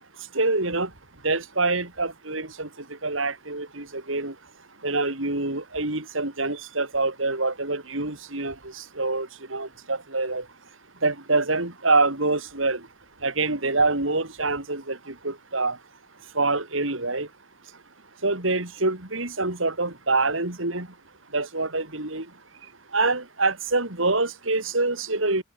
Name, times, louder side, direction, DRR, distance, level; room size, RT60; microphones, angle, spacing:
voice 1, 0.3-0.9 1.2-2.7 3.0-4.3 4.8-10.4 11.0-12.8 13.2-15.8 16.3-17.3 18.2-20.9 21.3-22.3 22.9-25.4, right 3 dB, 80° right, 4.7 m, -25 dB
head